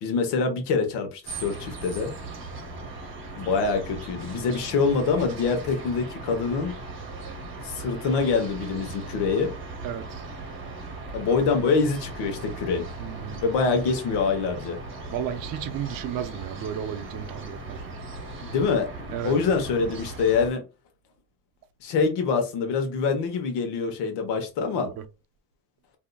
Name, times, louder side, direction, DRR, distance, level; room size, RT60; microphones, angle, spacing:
voice 1, 0.0-2.1 3.4-6.7 7.6-9.5 11.1-12.8 13.4-14.8 18.4-18.9 19.2-20.6 21.8-24.9, left 4 dB, 70° left, 1.1 m, -25 dB
sound 1, 1.2-20.5, right 2 dB, 30° right, 1.1 m, -38 dB
voice 2, 9.8-10.2 13.0-13.6 15.1-17.9 19.1-19.3 24.8-25.0, right 9 dB, 50° right, 0.6 m, -34 dB
3.7 x 2.7 x 2.2 m
cardioid pair, 140°, 43 cm